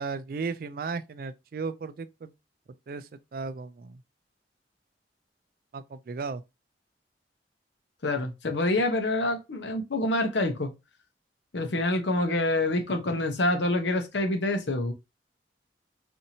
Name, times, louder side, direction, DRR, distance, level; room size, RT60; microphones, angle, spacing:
voice 1, 0.0-2.3 2.9-4.0 5.7-6.4, right 4 dB, 55° right, 0.3 m, -35 dB
voice 2, 8.0-10.7 11.5-14.9, left 2 dB, 90° left, 0.8 m, -26 dB
4.3 x 2.7 x 2.8 m
head